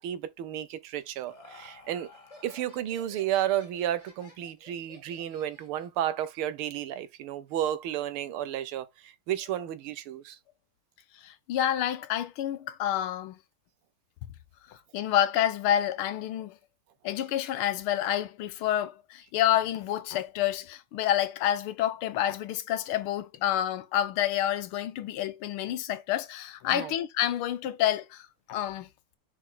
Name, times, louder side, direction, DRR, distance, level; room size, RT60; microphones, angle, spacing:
voice 1, 0.0-2.1 2.4-10.4 26.7-26.9, right 11 dB, 85° right, 1.7 m, -32 dB
Laughter, 0.8-6.0, left 2 dB, 15° left, 1.8 m, -53 dB
voice 2, 11.2-13.4 14.7-16.6 17.0-28.9, left 11 dB, 85° left, 1.7 m, -28 dB
6.4 x 4.5 x 3.8 m
omnidirectional pair, 2.3 m